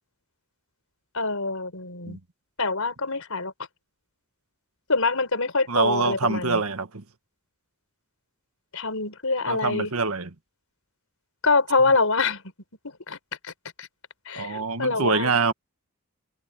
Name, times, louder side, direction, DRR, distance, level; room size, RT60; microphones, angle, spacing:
voice 1, 1.1-2.2 2.6-3.5 4.9-6.6 8.7-9.9 11.4-12.4 12.8-13.2 13.4-13.5 13.8-13.9 14.3-15.4, left 3 dB, 75° left, 4.6 m, -25 dB
voice 2, 5.7-7.0 9.5-10.3 14.4-15.5, right 4 dB, 85° right, 1.5 m, -25 dB
head